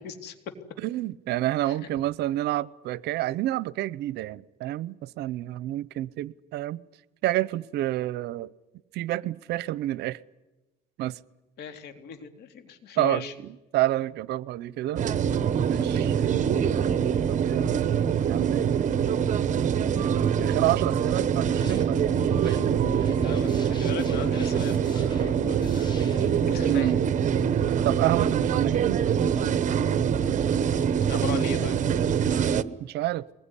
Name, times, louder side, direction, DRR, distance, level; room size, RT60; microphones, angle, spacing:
voice 1, 0.0-0.3 1.6-1.7 11.6-13.3 23.1-26.0 26.5-27.1 31.1-31.8, left 7 dB, 75° left, 7 dB, 3.3 m, -38 dB
voice 2, 0.8-6.8 7.2-8.5 8.9-10.2 11.0-11.2 13.0-15.0 15.7-16.6 17.3-17.8 18.3-18.7 20.3-22.1 22.4-22.9 26.6-27.0 27.8-29.0 32.8-33.3, right 15 dB, 80° right, 21 dB, 0.8 m, -29 dB
sound 1, 15.0-32.6, right 8 dB, 45° right, 1.1 m, -24 dB
sound 2, 21.3-26.8, left 2 dB, 25° left, 5.9 m, -41 dB
24.0 x 21.0 x 10.0 m, 1.1 s
cardioid pair, 110°, 17 cm